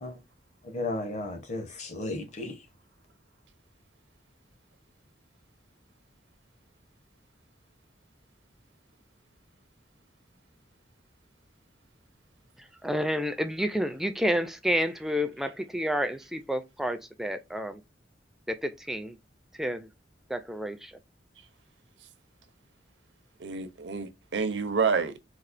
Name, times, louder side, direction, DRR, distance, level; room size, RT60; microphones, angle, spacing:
voice 1, 0.6-2.7, left 2 dB, 40° left, 0.8 m, -34 dB
voice 2, 12.8-17.8 18.5-19.2 19.6-19.9 20.3-20.9, equal, ahead, 0.4 m, -30 dB
voice 3, 23.4-25.2, right 5 dB, 70° right, 0.6 m, -28 dB
4.1 x 2.4 x 2.5 m
head